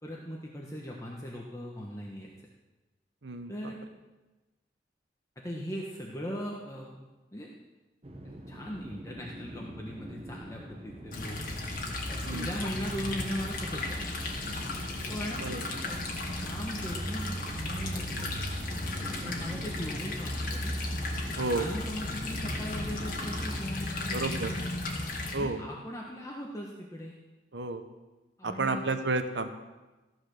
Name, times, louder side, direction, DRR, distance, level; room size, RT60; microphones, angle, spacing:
voice 1, 0.0-2.3 3.5-3.8 5.4-7.5 8.2-11.4 12.1-14.2 14.5-14.8 15.1-15.4 15.8-16.0 16.4-18.4 19.2-20.8 21.5-24.2 24.4-24.6 25.3-27.2 28.4-28.9, equal, 20° left, -2 dB, 1.2 m, -39 dB
sound 1, 8.0-23.6, equal, 35° right, 1.1 m, -45 dB
sound 2, 11.1-25.3, left 2 dB, 50° left, 2.2 m, -35 dB
voice 2, 21.4-21.7 24.1-24.5 25.3-25.6 27.5-27.8 28.4-29.5, right 3 dB, 85° right, 8 dB, 1.0 m, -31 dB
14.5 x 9.6 x 6.6 m, 1.1 s
head